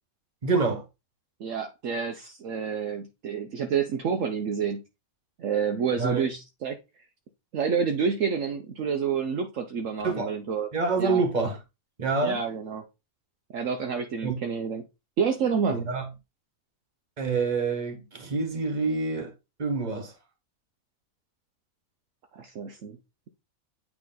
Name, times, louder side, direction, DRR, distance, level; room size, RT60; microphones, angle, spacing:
voice 1, 0.4-0.8 6.0-6.2 10.0-10.3 10.7-11.6 12.0-12.4 14.2-14.3 15.7-16.1 17.2-19.3 19.6-20.1, right 4 dB, 30° right, 1.5 m, -26 dB
voice 2, 1.4-4.8 5.4-6.8 7.5-10.7 11.0-11.2 12.2-12.8 13.5-14.8 15.2-15.8 22.3-23.0, right 6 dB, 65° right, 1.1 m, -28 dB
8.8 x 3.4 x 3.9 m
omnidirectional pair, 1.5 m